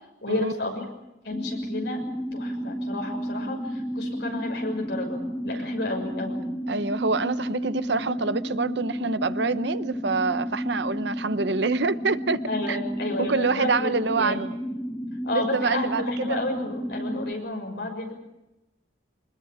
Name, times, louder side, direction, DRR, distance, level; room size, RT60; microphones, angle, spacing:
voice 1, 0.2-0.8 1.2-2.0 2.3-6.4 12.5-14.4 15.2-18.1, left 2 dB, 60° left, 6.4 m, -31 dB
sound 1, 1.3-17.3, equal, 5° left, 0.8 m, -32 dB
voice 2, 6.7-12.8 13.2-14.5 15.3-16.4, right 4 dB, 65° right, 0.9 m, -26 dB
24.0 x 21.0 x 8.7 m
head